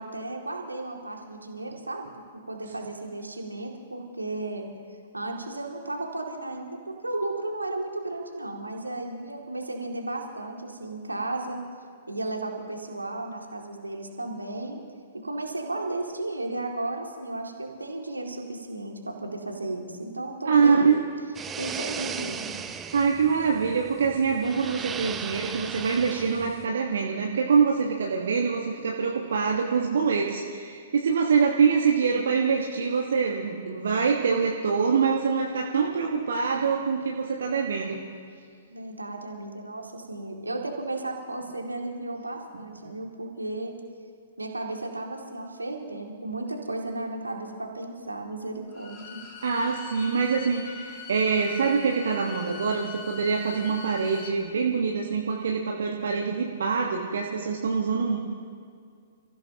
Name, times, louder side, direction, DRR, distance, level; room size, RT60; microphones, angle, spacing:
voice 1, 0.0-4.7 5.1-11.6 12.1-14.8 15.1-21.0 21.6-22.5 38.7-43.8 44.4-49.2, right 2 dB, 80° right, 1 dB, 2.3 m, -34 dB
voice 2, 20.4-21.0 22.9-38.0 42.5-42.9 49.4-58.2, right 5 dB, 60° right, 0 dB, 1.4 m, -25 dB
sound 1, 21.3-26.7, right 6 dB, 15° right, 0.6 m, -37 dB
Bowed string instrument, 48.7-54.4, left 7 dB, 35° left, 2.9 m, -42 dB
29.5 x 15.5 x 2.9 m, 2.2 s
figure-of-eight pair, 115°, 0 cm